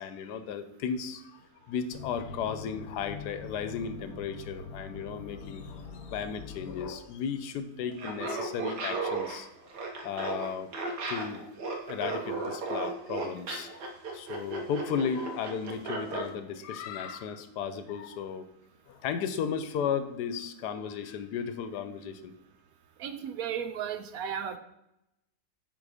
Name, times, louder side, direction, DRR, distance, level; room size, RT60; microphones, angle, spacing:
voice 1, 0.0-1.4 1.7-9.5 10.0-10.7 11.1-11.4 11.9-13.7 14.1-18.4 18.9-22.3, left 7 dB, 85° left, 11 dB, 1.3 m, -35 dB
sound 1, 1.9-6.9, left 5 dB, 65° left, 1.3 m, -44 dB
Laughter, 7.9-16.3, right 3 dB, 90° right, 1.8 m, -35 dB
voice 2, 23.0-24.6, right 8 dB, 70° right, 10 dB, 1.0 m, -34 dB
9.1 x 3.9 x 5.0 m, 0.85 s
omnidirectional pair, 1.7 m